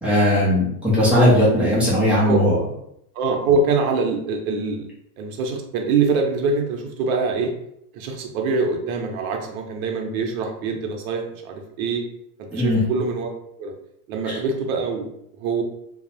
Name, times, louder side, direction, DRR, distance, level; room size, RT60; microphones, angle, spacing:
voice 1, 0.0-2.6 12.5-12.8 14.3-14.4, left 1 dB, 5° right, -9 dB, 0.4 m, -18 dB
voice 2, 3.2-4.9 5.2-7.5 7.9-12.0 12.5-13.3 13.6-13.7 14.1-15.1 15.4-15.6, right 4 dB, 60° right, 3 dB, 0.6 m, -24 dB
2.3 x 2.0 x 2.7 m, 0.75 s
supercardioid pair, 140°, 50 cm